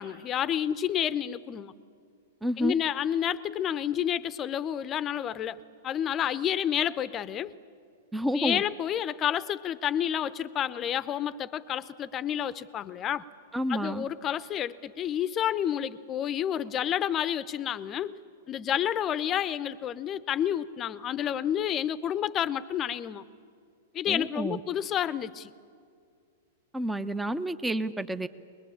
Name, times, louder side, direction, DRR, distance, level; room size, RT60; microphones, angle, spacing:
voice 1, 0.0-1.7 2.6-7.5 8.3-13.2 13.7-18.2 18.5-23.2 23.9-25.5, left 10 dB, 30° left, 16 dB, 0.8 m, -30 dB
voice 2, 2.4-2.8 8.1-8.6 13.5-14.0 24.1-24.6 26.7-28.3, equal, 5° right, 11 dB, 0.8 m, -29 dB
23.0 x 21.0 x 8.8 m, 2.3 s
hypercardioid pair, 105°, 0 cm